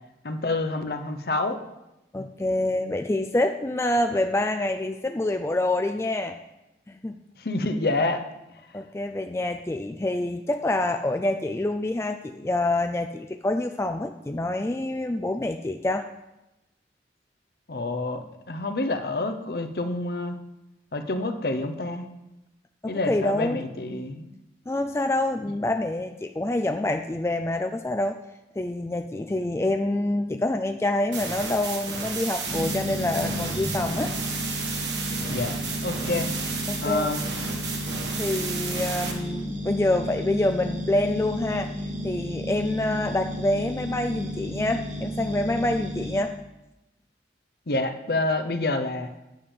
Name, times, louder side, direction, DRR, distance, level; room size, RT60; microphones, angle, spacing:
voice 1, 0.2-1.6 7.4-8.2 17.7-20.4 20.9-22.1 22.9-24.3 35.3-36.3 36.8-37.2 47.7-49.1, left 2 dB, 60° left, 7 dB, 0.8 m, -28 dB
voice 2, 2.1-6.4 6.9-7.2 8.7-16.1 22.8-23.6 24.7-28.2 28.6-34.1 36.7-37.1 38.2-41.7 42.0-46.3, left 1 dB, 15° left, 5 dB, 0.3 m, -26 dB
sound 1, 31.1-39.1, right 4 dB, 85° right, 1.7 m, -33 dB
sound 2, 32.4-46.2, equal, 45° right, 2.0 m, -33 dB
9.2 x 5.3 x 7.2 m, 0.95 s
head